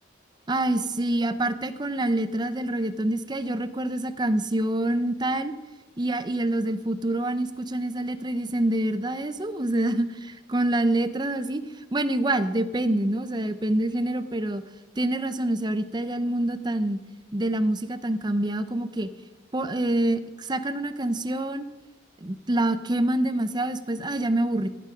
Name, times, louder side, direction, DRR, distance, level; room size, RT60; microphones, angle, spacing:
voice 1, 0.5-5.5 6.0-14.6 15.0-17.0 17.3-19.1 19.5-21.7 22.2-24.7, right 1 dB, 25° right, 11 dB, 0.6 m, -26 dB
16.0 x 9.2 x 5.2 m, 1.2 s
head